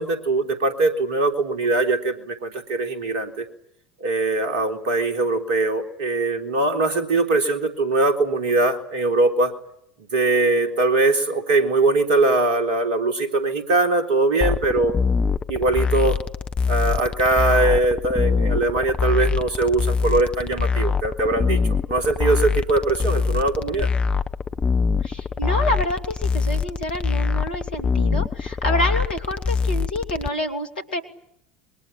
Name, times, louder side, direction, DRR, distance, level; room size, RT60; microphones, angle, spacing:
voice 1, 0.0-3.5 4.0-9.5 10.1-14.9 15.5-16.2 16.7-21.6 21.9-23.9, right 2 dB, 60° right, 6 dB, 3.6 m, -21 dB
sound 1, 14.4-30.3, left 5 dB, 25° left, 1.1 m, -24 dB
voice 2, 25.0-31.0, left 1 dB, 75° left, 5 dB, 3.0 m, -27 dB
26.5 x 23.0 x 8.9 m, 0.73 s
figure-of-eight pair, 70°, 5 cm